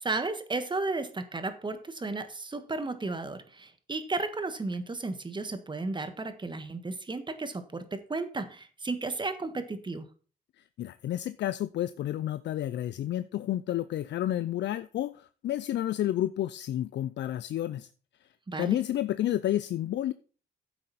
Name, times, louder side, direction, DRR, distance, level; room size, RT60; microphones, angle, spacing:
voice 1, 0.0-10.1 18.5-18.8, right 3 dB, 25° right, 10 dB, 1.4 m, -34 dB
voice 2, 10.6-17.9 18.6-20.1, left 12 dB, 65° left, 14 dB, 0.5 m, -30 dB
10.0 x 7.7 x 4.1 m, 0.39 s
cardioid pair, 90°, 20 cm